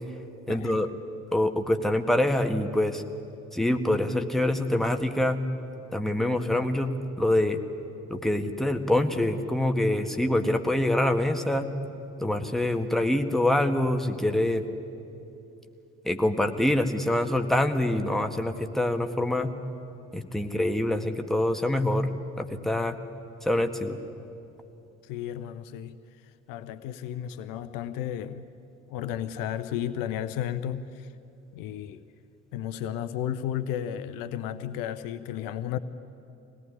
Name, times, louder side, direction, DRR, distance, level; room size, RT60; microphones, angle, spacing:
voice 1, 0.5-0.9 1.3-3.0 3.5-5.4 5.9-7.6 8.1-11.7 12.2-14.6 16.0-19.5 20.1-23.0 23.4-24.0, left 1 dB, ahead, 5 dB, 1.7 m, -25 dB
voice 2, 25.0-26.0 26.5-28.5 28.9-31.1 31.5-32.0 32.5-35.8, left 10 dB, 60° left, 12 dB, 0.8 m, -33 dB
24.0 x 18.0 x 9.9 m, 2.8 s
figure-of-eight pair, 50°, 37 cm